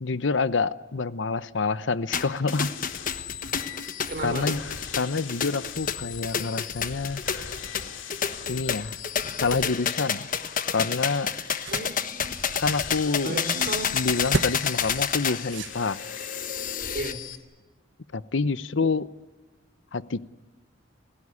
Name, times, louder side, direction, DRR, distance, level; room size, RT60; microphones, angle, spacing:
voice 1, 0.0-2.7 4.2-4.6 5.0-7.2 8.5-9.0 9.4-10.2 10.7-11.3 12.6-13.4 13.9-16.0 18.1-19.1 19.9-20.3, left 4 dB, 70° left, 16 dB, 0.8 m, -27 dB
sound 1, 2.1-17.1, left 7 dB, 45° left, 1.3 m, -29 dB
sound 2, 2.5-17.4, left 8 dB, 90° left, 2.4 m, -41 dB
voice 2, 4.1-4.5 11.7-12.4 13.2-13.9 16.9-17.2, right 1 dB, 50° right, 6 dB, 4.5 m, -33 dB
sound 3, 11.1-16.3, right 3 dB, 70° right, 1.0 m, -37 dB
29.5 x 16.0 x 9.7 m, 1.3 s
head